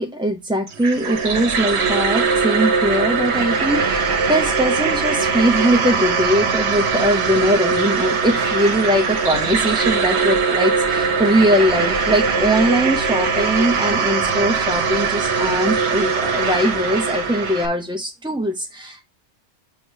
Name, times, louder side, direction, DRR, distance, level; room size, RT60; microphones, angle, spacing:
voice 1, 0.0-19.0, equal, 5° right, 2 dB, 0.5 m, -21 dB
sound 1, 0.7-17.7, right 5 dB, 70° right, 1.2 m, -21 dB
6.5 x 3.0 x 5.4 m, 0.23 s
omnidirectional pair, 1.2 m